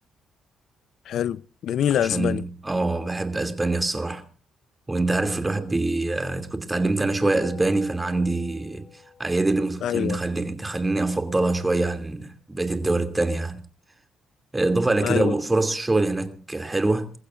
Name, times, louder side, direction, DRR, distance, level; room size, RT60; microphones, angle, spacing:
voice 1, 1.1-2.4 9.8-10.2 15.0-15.4, left 10 dB, 70° left, 0.7 m, -25 dB
voice 2, 2.1-4.2 4.9-8.9 9.2-13.6 14.5-17.1, right 2 dB, 15° right, 2.7 m, -24 dB
sound 1, 7.2-11.9, left 5 dB, 35° left, 6.4 m, -48 dB
27.0 x 15.5 x 2.6 m
cardioid pair, 90°, 0 cm